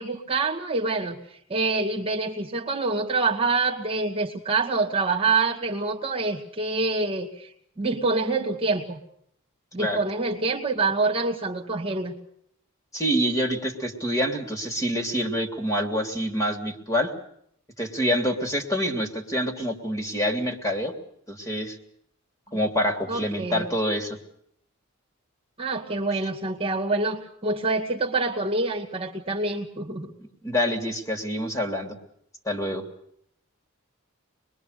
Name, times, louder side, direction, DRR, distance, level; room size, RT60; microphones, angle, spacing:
voice 1, 0.0-7.5 7.8-9.0 9.7-12.1 23.1-23.7 25.6-30.1, right 3 dB, 25° right, 0 dB, 2.1 m, -26 dB
voice 2, 12.9-17.1 17.8-20.9 21.3-21.8 22.5-24.2 30.2-32.0 32.4-32.8, equal, 15° left, 4 dB, 3.1 m, -26 dB
25.5 x 21.5 x 6.7 m, 0.69 s
head